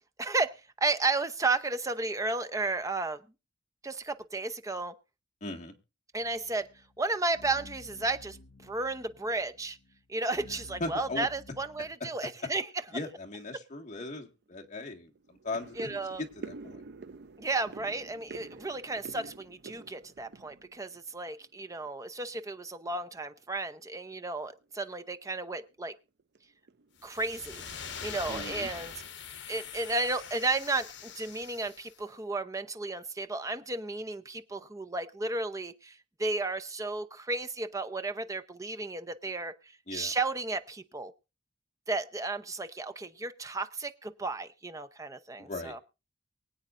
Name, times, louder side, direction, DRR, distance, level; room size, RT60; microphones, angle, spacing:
voice 1, 0.2-3.2 3.8-4.9 6.1-6.7 7.0-8.4 8.6-9.8 10.1-12.7 15.8-16.2 17.4-25.9 27.0-27.6 28.0-28.9 29.5-39.5 39.9-41.1 41.9-45.8, right 3 dB, 15° right, 9 dB, 0.7 m, -33 dB
voice 2, 5.4-5.7 10.8-11.3 12.9-15.8 16.2-16.8 28.3-28.7 39.9-40.1 45.4-45.8, left 2 dB, 40° left, 1 dB, 1.9 m, -38 dB
sound 1, 6.2-12.0, left 2 dB, 80° left, 1.4 m, -53 dB
sound 2, 14.0-14.1 14.5-14.7 15.0-21.6 21.9-22.5 22.9-23.1 23.4-23.5 23.9-24.1 24.5-24.6 25.1-25.6 26.2-26.4 26.7-27.4 27.7-27.8, right 3 dB, 55° right, 0.5 m, -48 dB
sound 3, 27.0-31.9, left 7 dB, 60° left, 1.5 m, -43 dB
23.5 x 8.7 x 2.6 m, 0.30 s
head